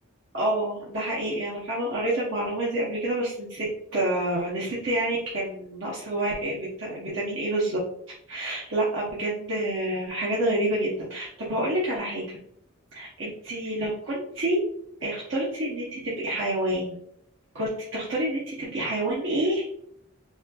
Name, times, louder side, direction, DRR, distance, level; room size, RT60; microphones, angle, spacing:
voice 1, 0.3-3.6 3.9-7.8 8.3-12.4 12.9-14.6 15.0-16.9 17.5-19.7, right 1 dB, 60° right, -7 dB, 0.8 m, -28 dB
4.1 x 2.3 x 2.3 m, 0.71 s
head